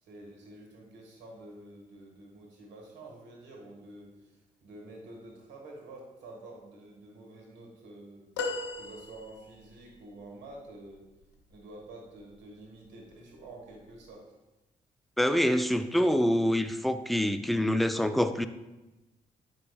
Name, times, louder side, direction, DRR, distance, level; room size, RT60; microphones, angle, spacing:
voice 1, 0.0-8.3 8.8-11.1 11.5-14.3 17.5-17.6, right 2 dB, 70° right, 0 dB, 1.4 m, -49 dB
sound 1, 8.4-9.8 12.2-12.3 13.7-13.8, left 3 dB, 75° left, 0.7 m, -36 dB
voice 2, 15.2-18.5, equal, ahead, 10 dB, 0.5 m, -26 dB
9.2 x 5.4 x 2.3 m, 1.0 s
hypercardioid pair, 40°, 19 cm